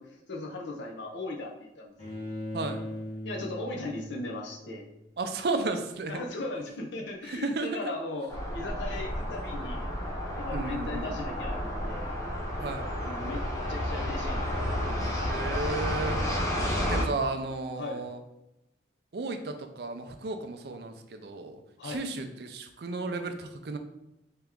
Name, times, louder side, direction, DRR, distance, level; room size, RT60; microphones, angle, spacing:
voice 1, 0.0-2.3 3.2-4.9 6.1-9.9 10.4-12.1 13.0-14.5 17.8-18.1 21.8-22.1, left 2 dB, 80° left, 1 dB, 0.7 m, -38 dB
Bowed string instrument, 2.0-5.0, left 1 dB, 35° left, 1.5 m, -39 dB
voice 2, 5.2-6.1 7.4-7.9 10.5-11.0 12.6-12.9 15.3-16.2 16.9-18.2 19.1-21.6 21.8-23.8, right 3 dB, 60° right, 7 dB, 0.4 m, -33 dB
sound 1, 8.3-17.0, equal, 20° left, 0.6 m, -31 dB
3.4 x 2.9 x 3.6 m, 0.87 s
head